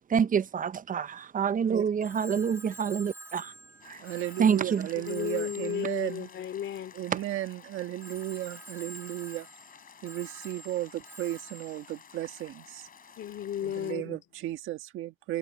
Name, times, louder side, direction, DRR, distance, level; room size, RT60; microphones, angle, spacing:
voice 1, 0.1-3.5 3.8-4.0 4.4-4.9 7.1-7.2, right 7 dB, 45° right, 0.7 m, -27 dB
Telephone, 2.0-7.3 8.0-12.9, right 2 dB, 10° right, 5.3 m, -49 dB
sound 1, 3.8-13.9, left 7 dB, 45° left, 3.6 m, -53 dB
voice 2, 4.0-6.3 6.9-9.5 10.0-12.9 13.6-15.4, right 14 dB, 90° right, 1.6 m, -35 dB
voice 3, 4.9-6.9 13.2-14.2, left 10 dB, 65° left, 2.7 m, -34 dB
cardioid pair, 90°, 20 cm